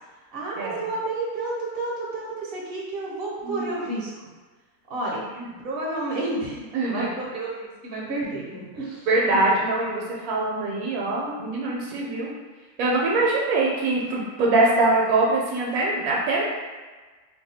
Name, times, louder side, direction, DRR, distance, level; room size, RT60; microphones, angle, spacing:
voice 1, 0.3-4.1 4.9-5.3 5.6-9.6, right 2 dB, 50° right, -5 dB, 0.7 m, -31 dB
voice 2, 5.1-5.5 6.7-7.1 9.1-12.3 12.8-16.4, right 2 dB, 75° right, -3 dB, 1.0 m, -23 dB
2.7 x 2.2 x 4.1 m, 1.3 s
omnidirectional pair, 1.6 m